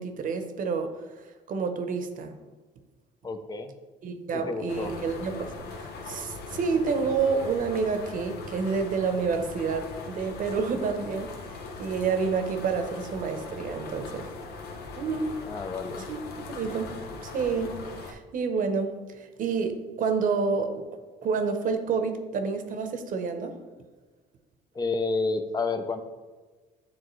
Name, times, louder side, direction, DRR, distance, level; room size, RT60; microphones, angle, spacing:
voice 1, 0.0-2.4 4.0-14.3 15.0-15.4 16.0-16.2 16.5-20.9 21.2-23.6, right 5 dB, 50° right, 7 dB, 0.8 m, -29 dB
voice 2, 3.2-3.7 4.3-4.9 15.4-16.1 24.7-26.0, left 3 dB, 25° left, 8 dB, 0.6 m, -30 dB
sound 1, 4.7-18.1, left 3 dB, 70° left, 0.8 m, -40 dB
8.9 x 3.7 x 3.1 m, 1.3 s
cardioid pair, 110°, 17 cm